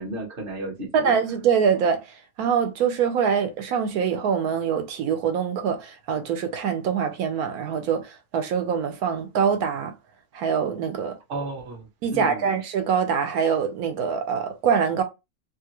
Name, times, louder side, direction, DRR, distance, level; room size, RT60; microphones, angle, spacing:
voice 1, 0.0-1.1 11.3-11.8 12.1-12.5, right 2 dB, 45° right, 0.9 m, -33 dB
voice 2, 0.9-2.0 2.4-9.9 10.3-11.1 12.0-15.0, right 7 dB, 85° right, 1.2 m, -24 dB
2.9 x 2.4 x 2.9 m
omnidirectional pair, 1.6 m